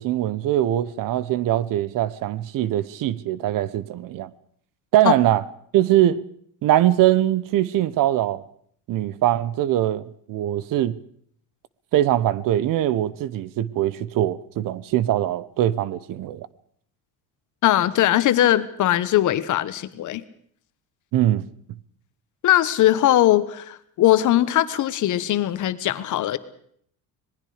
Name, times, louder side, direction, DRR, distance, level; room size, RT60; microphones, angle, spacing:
voice 1, 0.0-4.3 4.9-5.4 5.7-6.2 6.6-8.4 8.9-11.0 11.9-16.5 21.1-21.5, right 13 dB, 55° right, 1.0 m, -22 dB
voice 2, 17.6-20.2 22.4-26.4, left 13 dB, 50° left, 1.3 m, -20 dB
26.0 x 20.0 x 5.0 m
cardioid pair, 145°, 38 cm